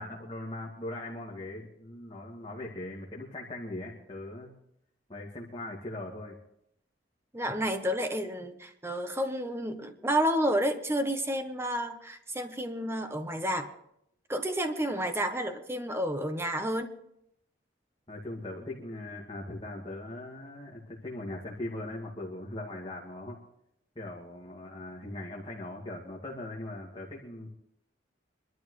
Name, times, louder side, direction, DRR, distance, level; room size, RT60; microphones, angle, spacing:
voice 1, 0.0-4.5 5.1-6.3 18.1-23.4 24.0-27.5, left 1 dB, 30° left, -4 dB, 2.4 m, -40 dB
voice 2, 7.3-13.7 14.3-16.9, equal, 15° right, 6 dB, 1.1 m, -30 dB
25.0 x 12.5 x 3.3 m, 0.74 s
head